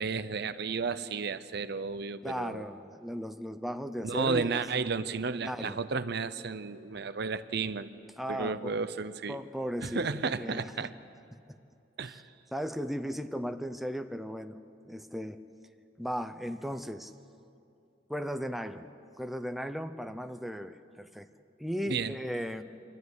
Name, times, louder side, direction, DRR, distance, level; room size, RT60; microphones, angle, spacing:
voice 1, 0.0-2.7 4.0-7.9 8.3-9.4 9.8-10.9 12.0-12.2 21.9-22.1, right 4 dB, 60° right, 12 dB, 0.7 m, -33 dB
voice 2, 2.2-4.6 5.4-5.8 8.2-8.8 9.3-10.9 12.1-12.2 12.5-14.6 14.9-15.4 16.0-17.1 18.1-18.8 19.2-21.3 21.6-22.6, equal, ahead, 7 dB, 0.6 m, -36 dB
25.5 x 13.0 x 9.6 m, 2.6 s
head